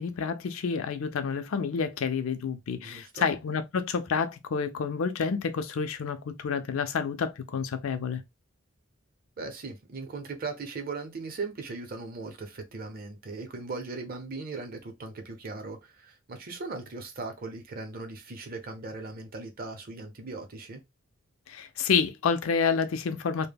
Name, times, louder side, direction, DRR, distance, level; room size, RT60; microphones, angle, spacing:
voice 1, 0.0-8.2 21.5-23.5, left 6 dB, 80° left, 0.4 m, -29 dB
voice 2, 2.8-3.3 9.4-20.8, right 3 dB, 45° right, 0.6 m, -38 dB
2.1 x 2.1 x 3.3 m
head